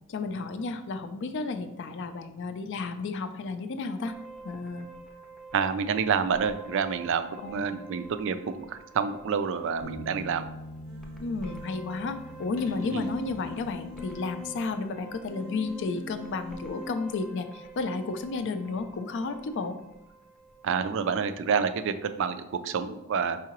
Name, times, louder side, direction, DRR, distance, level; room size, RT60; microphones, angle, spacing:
voice 1, 0.1-4.1 4.4-4.9 7.4-7.8 11.2-19.8, left 3 dB, 55° left, 10 dB, 0.4 m, -32 dB
sound 1, 4.0-21.1, right 3 dB, ahead, 0.6 m, -48 dB
voice 2, 5.5-10.4 12.9-13.1 20.6-23.4, right 6 dB, 60° right, 10 dB, 0.3 m, -28 dB
sound 2, 9.8-14.7, left 1 dB, 75° left, 0.8 m, -44 dB
Human voice, 10.8-11.7 12.7-14.5 15.3-16.9, left 3 dB, 90° right, 0.7 m, -43 dB
4.8 x 3.6 x 2.9 m, 0.93 s
head